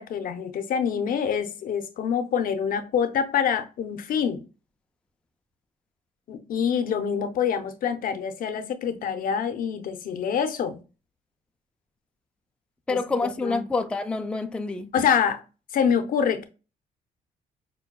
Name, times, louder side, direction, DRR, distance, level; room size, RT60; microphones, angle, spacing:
voice 1, 0.0-4.4 6.3-10.8 12.9-13.6 14.9-15.4 15.7-16.4, left 7 dB, 65° left, 0.6 m, -26 dB
voice 2, 12.9-14.9, left 3 dB, 5° left, 0.3 m, -27 dB
5.8 x 2.2 x 2.3 m
cardioid pair, 100°, 16 cm